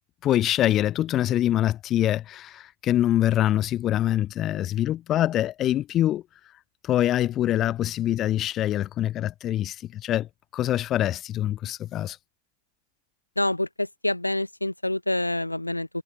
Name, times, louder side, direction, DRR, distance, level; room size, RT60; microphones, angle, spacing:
voice 1, 0.2-6.2 6.8-12.2, left 12 dB, 30° left, 2.0 m, -24 dB
voice 2, 13.4-15.9, left 1 dB, 85° left, 2.0 m, -27 dB
figure-of-eight pair, 90°, 0 cm